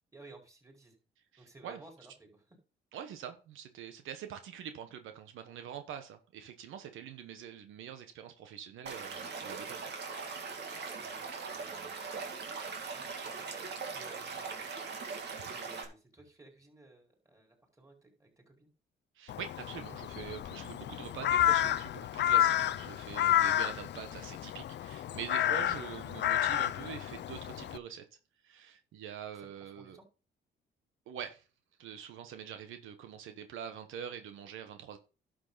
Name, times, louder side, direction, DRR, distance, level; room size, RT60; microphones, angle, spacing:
voice 1, 0.1-1.0 1.4-2.6 10.7-12.0 12.7-14.6 15.0-18.7 29.3-30.0, right 2 dB, 15° right, 0 dB, 4.6 m, -57 dB
voice 2, 1.3-1.8 2.9-9.9 19.1-28.0 28.4-30.0 31.1-31.4 31.8-35.0, right 9 dB, 85° right, 8 dB, 1.1 m, -45 dB
Stream / Liquid, 8.9-15.9, right 5 dB, 60° right, 2.4 m, -40 dB
Crow, 19.3-27.8, left 12 dB, 60° left, 0.5 m, -31 dB
11.5 x 6.5 x 4.0 m, 0.33 s
cardioid pair, 90°, 20 cm